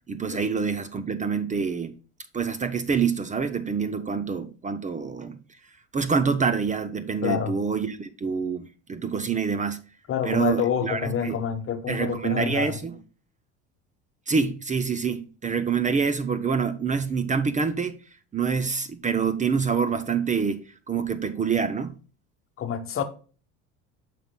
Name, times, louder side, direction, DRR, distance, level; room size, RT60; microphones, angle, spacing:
voice 1, 0.1-1.9 2.3-5.4 5.9-9.8 10.2-11.4 11.9-13.0 14.3-18.0 18.3-21.9, right 5 dB, 20° right, 0.6 m, -26 dB
voice 2, 7.2-7.6 10.1-12.8 22.6-23.0, left 8 dB, 40° left, 1.0 m, -27 dB
9.0 x 5.9 x 2.2 m
supercardioid pair, 95°, 34 cm